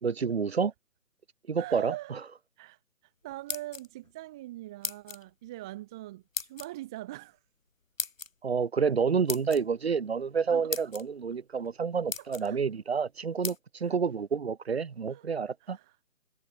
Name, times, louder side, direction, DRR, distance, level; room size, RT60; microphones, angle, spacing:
voice 1, 0.0-0.7 1.5-2.2 8.4-15.8, right 6 dB, 45° right, 2.4 m, -29 dB
voice 2, 1.6-2.2 2.6-2.8 3.2-7.4 10.5-10.8 12.2-12.6 13.8-14.0 15.1-15.3 15.6-16.0, right 16 dB, 5° right, 0.8 m, -42 dB
sound 1, 3.3-4.1 4.8-5.2 6.3-6.7 8.0-8.3 9.3-9.6 10.3-10.4 10.7-11.0 11.6-11.7 12.1-12.5 13.4-13.6, left 4 dB, 60° left, 2.3 m, -36 dB
figure-of-eight pair, 150°, 44 cm